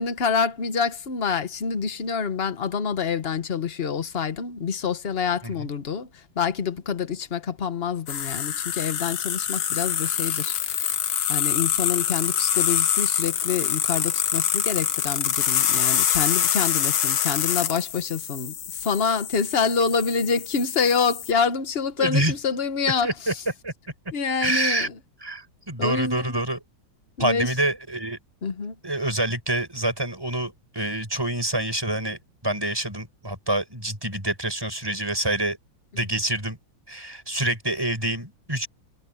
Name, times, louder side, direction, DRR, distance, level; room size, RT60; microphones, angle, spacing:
voice 1, 0.0-6.1 6.3-11.0 11.3-23.4 24.1-24.9 25.8-26.3 27.2-27.5 28.4-28.7, left 6 dB, 35° left, 1.2 m, -27 dB
sound 1, 8.1-21.3, left 9 dB, 65° left, 1.7 m, -25 dB
voice 2, 22.0-22.3 23.0-23.3 23.6-23.7 24.4-24.9 25.2-26.6 27.2-28.2 28.8-35.6 35.9-36.6 36.9-38.7, right 1 dB, 10° right, 7.1 m, -27 dB
omnidirectional pair, 2.3 m